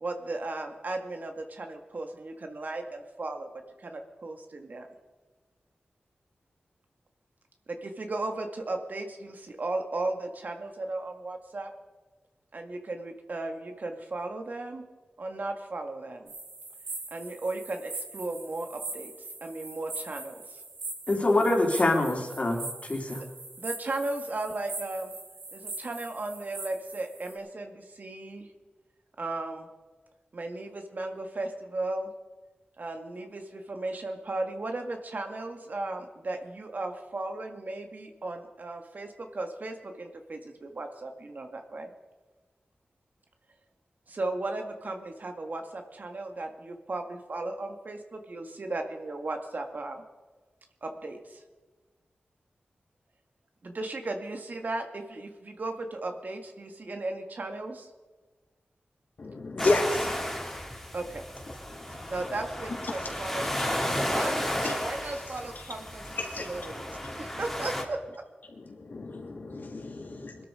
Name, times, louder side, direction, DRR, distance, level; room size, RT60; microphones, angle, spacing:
voice 1, 0.0-3.5 3.8-4.9 7.7-11.7 12.5-14.9 15.2-16.3 17.1-19.1 19.4-20.6 23.6-25.1 25.5-28.5 29.2-29.7 30.3-32.1 32.8-41.9 44.1-50.0 50.8-51.4 53.6-57.9 60.9-61.2 62.1-66.9 67.2-68.2, right 2 dB, 55° right, 5 dB, 1.9 m, -36 dB
sound 1, 16.3-27.3, right 3 dB, 85° right, 4.7 m, -41 dB
voice 2, 21.1-23.2, left 2 dB, 40° left, 0 dB, 3.5 m, -25 dB
voice 3, 59.2-60.1 61.7-61.8 64.6-64.7 66.2-67.3 68.5-70.5, left 2 dB, 65° left, 1 dB, 3.1 m, -32 dB
sound 2, 59.6-67.8, left 1 dB, 5° left, 2.7 m, -33 dB
22.0 x 12.5 x 5.0 m, 1.3 s
wide cardioid pair, 95°, 3 cm